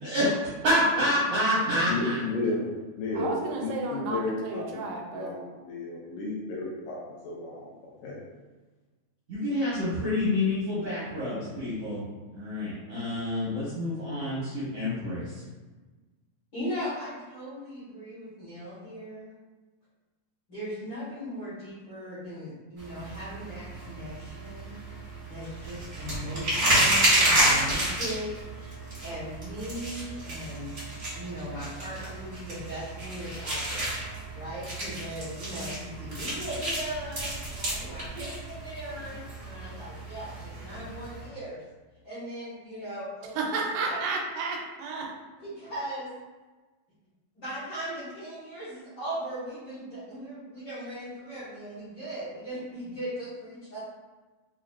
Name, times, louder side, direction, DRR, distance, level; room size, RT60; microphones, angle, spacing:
voice 1, 0.0-0.3 0.6-2.2 9.3-12.0 12.3-15.4, left 1 dB, 70° right, -11 dB, 1.4 m, -28 dB
voice 2, 1.9-2.7 3.0-3.3 3.6-4.8 5.1-8.2, left 3 dB, 80° left, -5 dB, 1.9 m, -33 dB
voice 3, 3.2-5.3 43.4-45.1, right 3 dB, 90° right, 0 dB, 2.4 m, -32 dB
voice 4, 16.5-19.3 20.5-24.8 25.0-30.7 31.1-41.6 42.0-43.5 43.8-44.0 45.4-46.1 47.3-53.8, equal, 55° left, -12 dB, 1.3 m, -38 dB
sound 1, 22.8-41.3, right 1 dB, 45° right, 0.9 m, -30 dB
5.8 x 2.2 x 2.3 m, 1.3 s
omnidirectional pair, 4.0 m